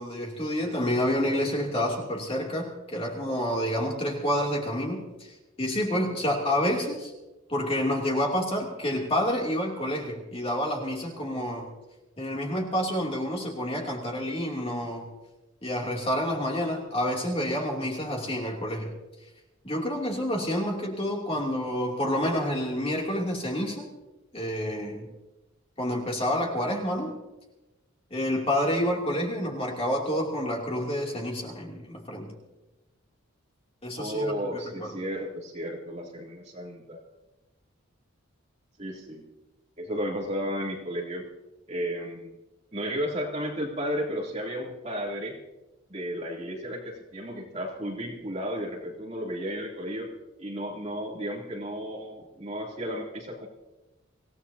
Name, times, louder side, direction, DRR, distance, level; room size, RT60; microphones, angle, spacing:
voice 1, 0.0-7.1 7.5-11.7 12.2-15.1 15.6-18.9 19.6-23.9 24.3-25.1 25.8-27.1 28.1-32.3 33.8-35.0, equal, 25° left, -1 dB, 2.8 m, -28 dB
voice 2, 34.0-37.0 38.8-39.2 39.8-41.3 41.7-42.4 42.7-45.4 45.9-50.1 50.4-53.5, equal, 30° right, -3 dB, 3.0 m, -33 dB
26.0 x 17.0 x 2.8 m, 1.0 s
head